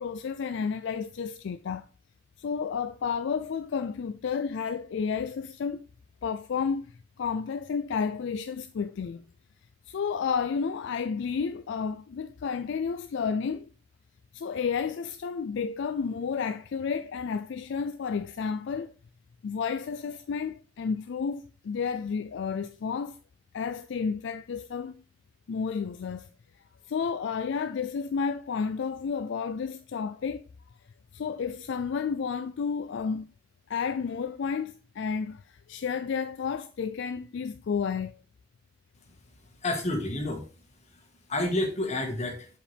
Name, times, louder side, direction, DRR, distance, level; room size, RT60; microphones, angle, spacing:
voice 1, 0.0-1.8 2.4-5.8 6.2-9.2 9.9-13.7 14.3-18.9 19.4-23.2 23.5-24.9 25.5-26.3 26.9-30.4 31.1-33.3 33.7-38.2, left 6 dB, 65° left, 0.4 m, -31 dB
voice 2, 39.6-40.4 40.9-41.0 41.3-42.5, left 1 dB, 35° left, 1.6 m, -29 dB
7.0 x 4.9 x 3.4 m
head